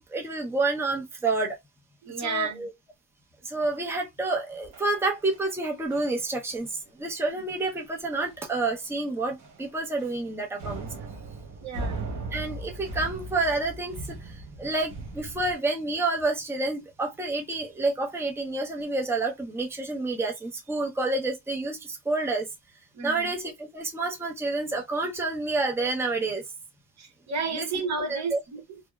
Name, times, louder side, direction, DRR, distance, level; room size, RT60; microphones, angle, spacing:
voice 1, 0.0-1.6 2.2-2.7 3.4-10.9 12.3-22.5 23.0-26.4 27.6-27.7 28.1-28.4, right 3 dB, 10° right, 0.7 m, -29 dB
voice 2, 2.0-2.7 11.6-12.1 22.9-23.3 27.0-28.8, right 5 dB, 65° right, 1.0 m, -32 dB
sound 1, 4.7-5.6 5.9-6.2 6.5-6.7 7.1-7.3 7.6-7.7 8.2-8.5 8.8-9.0 9.4-10.3 10.6-15.5, right 2 dB, 90° right, 0.9 m, -39 dB
2.8 x 2.1 x 2.3 m
cardioid pair, 90°, 30 cm